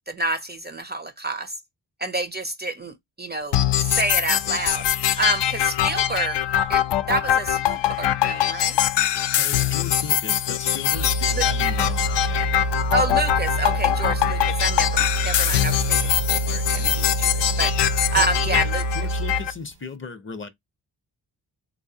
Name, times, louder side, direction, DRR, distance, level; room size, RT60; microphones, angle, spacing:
voice 1, 0.0-1.6 2.0-4.8 5.2-6.4 6.7-8.8 11.4-11.5 12.9-16.0 16.3-17.7 18.1-18.8, right 2 dB, 25° right, 0.4 m, -28 dB
sound 1, 3.5-19.5, left 11 dB, 90° left, 0.5 m, -23 dB
voice 2, 9.4-12.5 18.1-20.5, left 5 dB, 30° left, 0.5 m, -37 dB
sound 2, 10.9-19.6, right 1 dB, 70° right, 0.6 m, -27 dB
3.7 x 2.7 x 2.6 m
wide cardioid pair, 150°, 40 cm